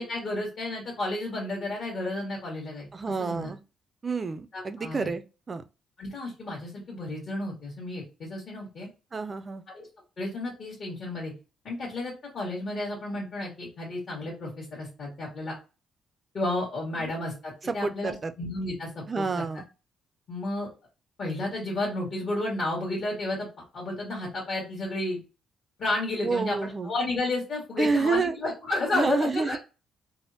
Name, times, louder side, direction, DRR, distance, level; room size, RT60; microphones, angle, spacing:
voice 1, 0.0-2.9 3.2-3.5 4.5-5.1 6.0-8.9 9.7-9.9 10.2-11.3 11.6-15.5 16.3-19.4 20.3-20.7 21.2-25.2 25.8-29.6, left 2 dB, 55° left, 1.3 m, -32 dB
voice 2, 2.9-3.6 4.0-5.2 5.5-5.6 9.1-9.6 17.0-17.1 17.7-18.3 19.1-19.6 26.2-26.9 27.8-28.3 28.9-29.6, right 4 dB, 35° right, 0.4 m, -28 dB
3.4 x 2.0 x 2.6 m
cardioid pair, 90°, 0 cm